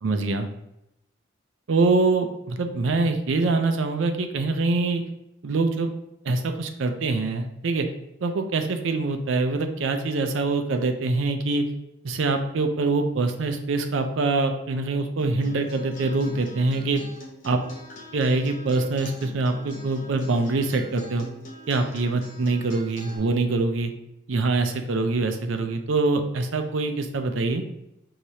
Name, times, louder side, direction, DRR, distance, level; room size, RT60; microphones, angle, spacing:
voice 1, 0.0-0.5 1.7-5.0 5.4-5.9 6.2-7.9 8.2-11.6 12.0-17.0 17.4-17.6 18.1-21.3 21.7-23.9 24.3-27.6, right 3 dB, 75° right, 6 dB, 0.5 m, -24 dB
Acoustic guitar, 15.2-23.2, equal, 40° left, 0.7 m, -44 dB
4.7 x 2.9 x 2.7 m, 0.84 s
head